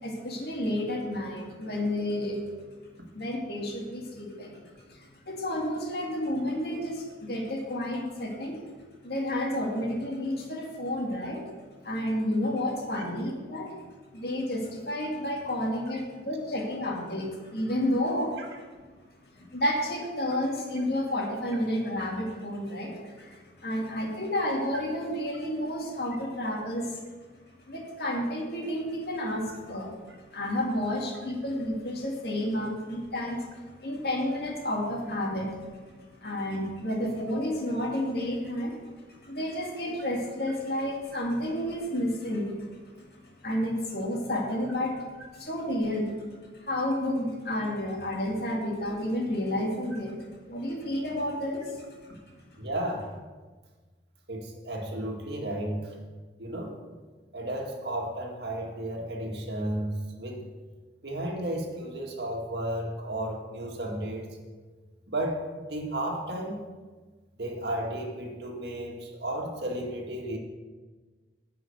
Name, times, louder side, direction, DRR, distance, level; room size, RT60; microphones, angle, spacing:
voice 1, 0.0-2.4 3.1-4.6 5.3-8.6 9.0-11.4 11.8-13.7 14.1-18.4 19.5-27.0 27.7-29.9 30.3-33.5 33.8-35.7 36.2-38.8 39.2-42.5 43.4-44.9 45.3-46.1 46.7-50.2 50.5-51.7, left 1 dB, 60° left, -1 dB, 2.2 m, -30 dB
voice 2, 52.6-53.1 54.3-55.9 56.4-56.7 57.3-60.4 61.0-64.4 65.1-65.4 65.7-66.6 67.4-70.4, right 1 dB, 70° right, 1 dB, 2.0 m, -33 dB
11.0 x 5.7 x 8.0 m, 1.4 s
head